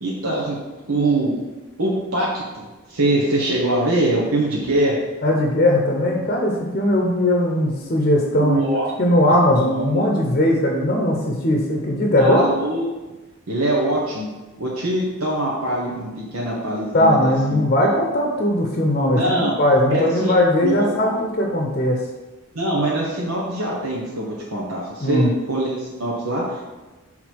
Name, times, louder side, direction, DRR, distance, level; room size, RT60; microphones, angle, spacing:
voice 1, 0.0-0.6 0.9-1.4 1.8-5.1 8.4-8.9 9.5-10.0 12.2-12.8 13.5-14.3 14.6-17.7 19.1-19.6 19.9-20.3 20.6-21.1 22.5-26.7, right 1 dB, 85° right, -4 dB, 1.1 m, -23 dB
voice 2, 5.2-8.7 9.0-12.5 16.9-22.0 25.0-25.3, left 1 dB, 40° left, 0 dB, 0.7 m, -19 dB
6.1 x 3.8 x 4.6 m, 1.1 s
head